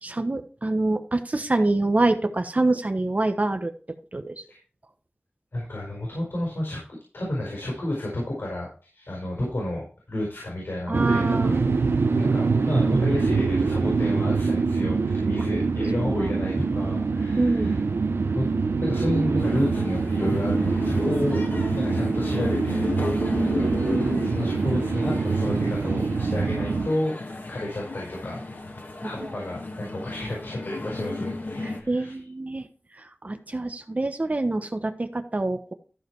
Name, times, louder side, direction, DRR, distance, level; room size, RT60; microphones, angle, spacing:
voice 1, 0.0-3.7 4.1-4.4 10.9-11.5 16.2-16.3 17.4-17.7 23.3-24.1 29.2-29.4 31.1-31.2 31.6-32.6 33.0-35.7, right 2 dB, 40° right, 8 dB, 1.1 m, -26 dB
voice 2, 5.5-6.8 7.1-11.7 12.1-17.8 18.3-18.5 18.8-21.4 21.7-22.9 23.4-23.7 24.2-27.2 27.5-28.4 29.0-32.2, left 1 dB, 75° left, -3 dB, 4.8 m, -31 dB
sound 1, 10.9-26.9, right 4 dB, 85° right, 0.7 m, -24 dB
sound 2, 19.4-31.8, left 2 dB, 55° left, 1.8 m, -33 dB
13.5 x 5.1 x 4.6 m, 0.37 s
wide cardioid pair, 60°, 4 cm